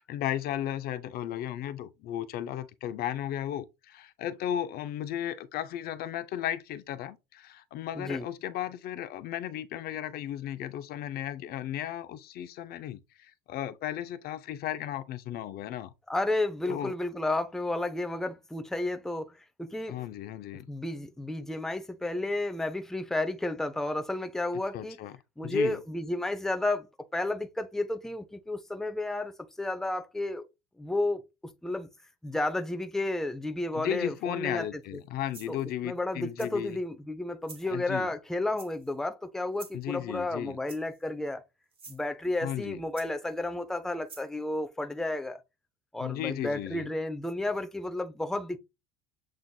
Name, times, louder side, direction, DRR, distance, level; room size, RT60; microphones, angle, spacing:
voice 1, 0.0-15.9 16.7-16.9 19.9-20.7 24.7-25.1 25.4-25.8 33.8-36.8 37.7-38.1 39.7-40.6 42.4-42.8 46.0-46.9, left 11 dB, 50° left, 0.5 m, -35 dB
voice 2, 7.9-8.3 16.1-20.0 20.7-25.0 25.4-26.9 27.1-29.3 29.6-30.4 30.8-31.2 31.6-31.9 32.2-34.7 35.5-35.6 35.8-41.4 41.9-45.4 45.9-48.6, left 2 dB, ahead, 0.5 m, -32 dB
sound 1, 34.8-35.0 35.3-35.7 36.4-36.8 37.4-37.7 38.6-39.0 39.5-39.9 40.7-41.1 41.7-42.0 43.0-43.4 44.1-44.3, right 4 dB, 30° right, 1.3 m, -49 dB
7.4 x 2.5 x 2.2 m
supercardioid pair, 95°, 20 cm